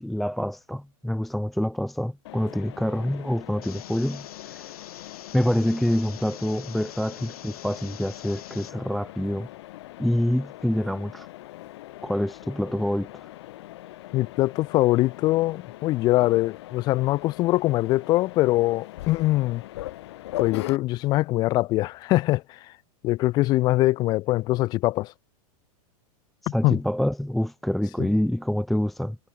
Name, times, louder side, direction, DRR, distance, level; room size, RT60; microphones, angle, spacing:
voice 1, 0.0-4.6 5.3-9.5 10.0-11.3 12.0-13.3 26.4-29.2, left 1 dB, ahead, 0.4 m, -26 dB
Mechanisms, 2.2-20.8, left 16 dB, 45° left, 4.3 m, -41 dB
sound 1, 3.6-8.7, left 11 dB, 75° left, 7.2 m, -46 dB
voice 2, 14.1-19.6 20.4-22.6 23.0-25.1 26.6-26.8 28.0-28.1, left 18 dB, 20° left, 1.4 m, -23 dB
supercardioid pair, 180°, 19 cm